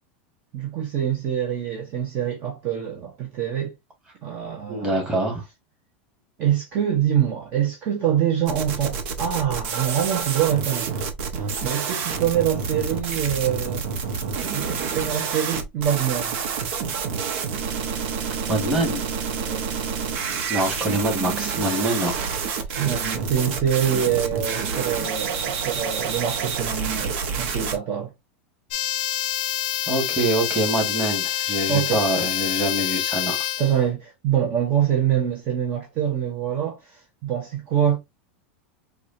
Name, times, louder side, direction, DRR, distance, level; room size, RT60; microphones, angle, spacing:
voice 1, 0.5-3.7 4.2-5.1 6.4-11.0 11.3-14.1 14.5-16.4 19.4-19.6 22.8-28.1 31.7-32.0 33.6-38.0, right 9 dB, 35° right, 0.9 m, -25 dB
voice 2, 4.7-5.4 18.5-19.0 20.5-22.1 29.9-33.4, right 1 dB, 15° right, 1.8 m, -24 dB
sound 1, 8.5-27.8, right 6 dB, 70° right, 1.0 m, -28 dB
sound 2, 28.7-33.8, left 12 dB, 60° left, 0.5 m, -26 dB
4.8 x 2.4 x 2.7 m
supercardioid pair, 155°, 6 cm